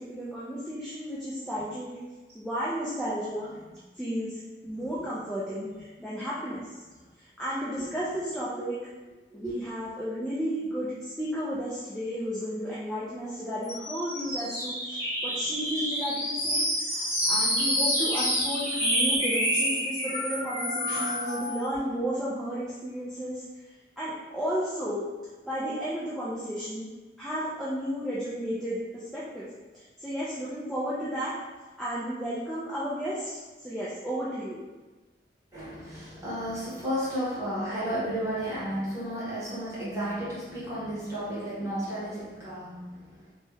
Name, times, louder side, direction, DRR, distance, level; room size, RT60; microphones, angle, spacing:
voice 1, 0.1-2.0 2.3-3.5 4.0-4.3 4.6-6.6 7.4-8.8 9.3-15.0 15.2-23.4 24.0-25.0 25.4-26.9 27.2-29.5 29.7-31.3 31.8-33.3 33.6-34.6, equal, ahead, -10 dB, 0.4 m, -33 dB
sound 1, 13.6-21.6, equal, 15° left, 1.4 m, -28 dB
voice 2, 15.3-15.8 17.2-17.5 18.7-18.8 20.9-21.5 35.5-43.2, equal, 15° right, -10 dB, 1.2 m, -34 dB
3.1 x 2.2 x 3.4 m, 1.2 s
head